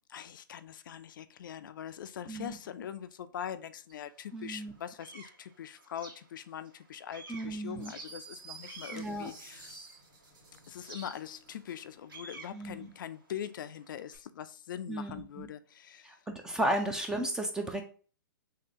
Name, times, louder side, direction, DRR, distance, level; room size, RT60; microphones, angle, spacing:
voice 1, 0.1-9.9 10.7-16.2, left 9 dB, 65° left, 0.4 m, -42 dB
sound 1, 3.9-4.0 4.5-6.8 7.1-10.2 10.8-14.2, right 3 dB, 85° right, 2.0 m, -50 dB
voice 2, 4.3-4.7 7.3-7.9 8.9-9.3 12.5-12.9 14.9-15.5 16.1-17.8, right 1 dB, 5° right, 0.5 m, -34 dB
sound 2, 7.8-11.8, right 4 dB, 60° right, 1.4 m, -52 dB
3.7 x 3.3 x 2.8 m
hypercardioid pair, 135°, 11 cm